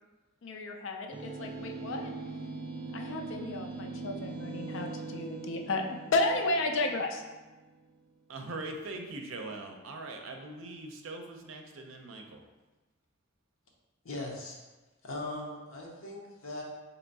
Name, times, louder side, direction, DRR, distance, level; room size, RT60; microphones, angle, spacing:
voice 1, 0.4-2.1 2.9-7.2, left 2 dB, 65° left, 3 dB, 0.5 m, -32 dB
sound 1, 1.1-7.7, right 3 dB, 25° right, 0.5 m, -41 dB
voice 2, 8.3-12.4, right 2 dB, 75° right, 3 dB, 0.5 m, -41 dB
voice 3, 14.0-14.6 15.0-16.6, left 2 dB, 80° left, -2 dB, 0.9 m, -39 dB
3.4 x 2.9 x 4.0 m, 1.2 s
head